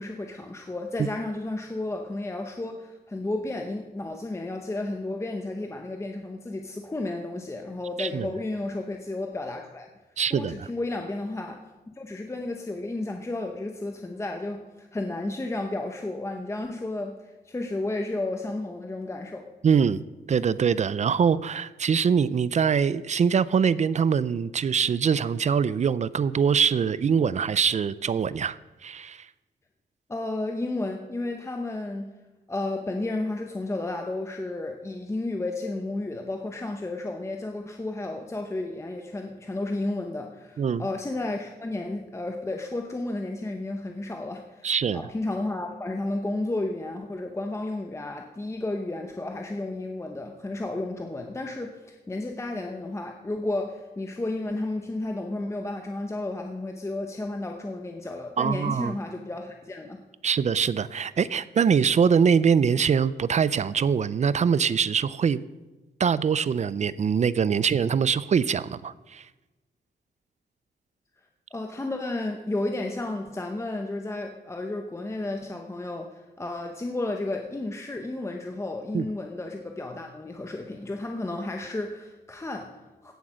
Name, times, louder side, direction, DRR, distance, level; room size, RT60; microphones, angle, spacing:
voice 1, 0.0-9.9 10.3-11.7 12.0-19.5 30.1-32.2 32.5-60.0 71.5-83.1, left 2 dB, 15° left, 4 dB, 0.8 m, -32 dB
voice 2, 8.0-8.3 10.2-10.7 19.6-20.0 20.3-29.3 40.6-40.8 44.6-45.0 58.4-58.9 60.2-65.4 66.0-69.2 78.9-79.1, right 6 dB, 40° right, 18 dB, 0.4 m, -23 dB
16.5 x 8.0 x 6.3 m, 1.2 s
wide cardioid pair, 155°, 18 cm